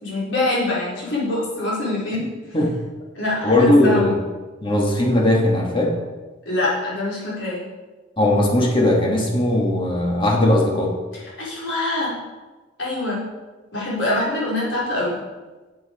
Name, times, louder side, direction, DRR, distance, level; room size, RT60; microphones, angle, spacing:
voice 1, 0.0-2.3 3.1-4.2 6.5-7.6 11.4-12.2 12.8-13.2 13.7-15.2, left 2 dB, 70° left, -6 dB, 4.3 m, -24 dB
voice 2, 3.4-4.2 4.6-5.9 8.2-10.9, left 1 dB, 25° left, -1 dB, 2.3 m, -18 dB
14.0 x 7.8 x 4.6 m, 1.2 s
head